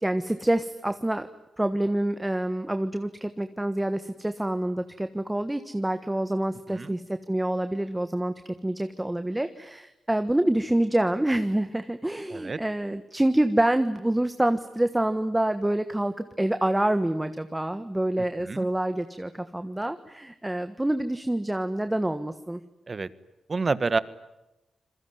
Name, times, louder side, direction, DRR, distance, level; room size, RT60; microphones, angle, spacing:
voice 1, 0.0-1.3 1.6-22.6, right 1 dB, 10° right, 10 dB, 1.4 m, -27 dB
voice 2, 23.5-24.0, right 4 dB, 40° right, 16 dB, 1.5 m, -28 dB
27.5 x 22.0 x 9.5 m, 0.94 s
cardioid pair, 75°, 0 cm